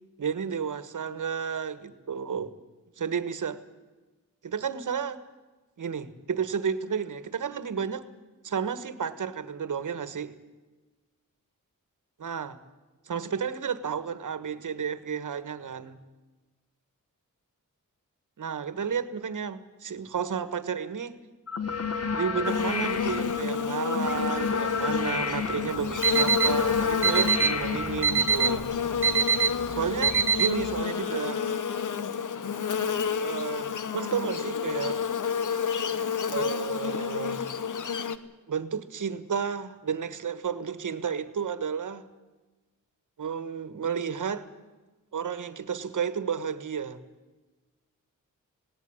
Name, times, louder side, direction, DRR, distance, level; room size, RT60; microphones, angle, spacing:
voice 1, 0.2-2.5 3.0-3.6 4.4-5.2 5.8-8.1 8.4-10.3 12.2-12.6 13.0-16.0 18.4-21.2 22.1-28.7 29.8-31.4 33.2-35.0 36.3-37.5 38.5-42.1 43.2-44.5 45.1-47.0, right 7 dB, 65° right, 13 dB, 1.5 m, -32 dB
sound 1, 21.5-28.6, left 5 dB, 45° left, 1.8 m, -31 dB
Buzz, 22.4-38.2, left 7 dB, 65° left, 1.1 m, -30 dB
Alarm, 25.8-30.8, right 6 dB, 40° right, 0.8 m, -25 dB
18.5 x 18.0 x 8.9 m, 1.2 s
cardioid pair, 85°, 33 cm